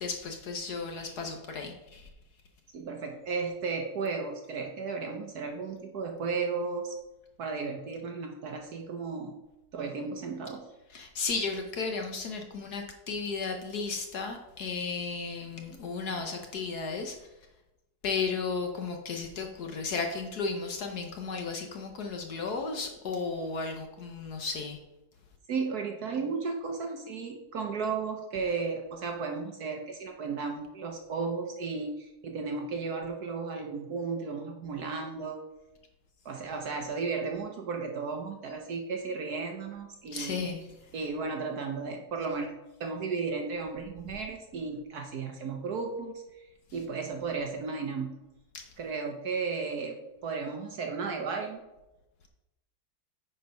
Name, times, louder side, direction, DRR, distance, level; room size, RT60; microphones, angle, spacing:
voice 1, 0.0-2.1 10.9-17.2 18.0-24.8 40.1-40.6 48.5-48.6, left 4 dB, 60° left, 4 dB, 1.2 m, -34 dB
voice 2, 2.7-6.9 7.4-9.3 9.7-10.6 25.5-35.4 36.2-40.4 40.9-42.5 42.8-46.2 46.7-48.1 48.8-49.9 50.2-51.6, right 4 dB, 60° right, 3 dB, 1.2 m, -34 dB
9.2 x 4.6 x 5.3 m, 0.97 s
omnidirectional pair, 2.2 m